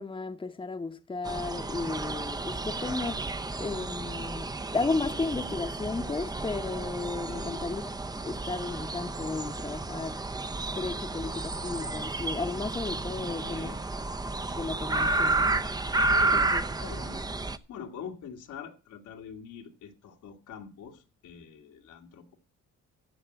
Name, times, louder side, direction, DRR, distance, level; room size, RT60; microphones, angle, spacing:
voice 1, 0.0-3.2 3.6-4.5 4.7-7.8 8.2-10.2 10.7-13.7 14.6-15.5 16.3-16.6, left 3 dB, 15° left, 1.0 m, -34 dB
sound 1, 1.2-17.6, right 2 dB, 15° right, 0.7 m, -31 dB
voice 2, 7.3-7.6 13.2-13.8 15.0-22.4, left 7 dB, 80° left, 2.1 m, -45 dB
14.0 x 5.3 x 7.8 m
cardioid pair, 90°, 30 cm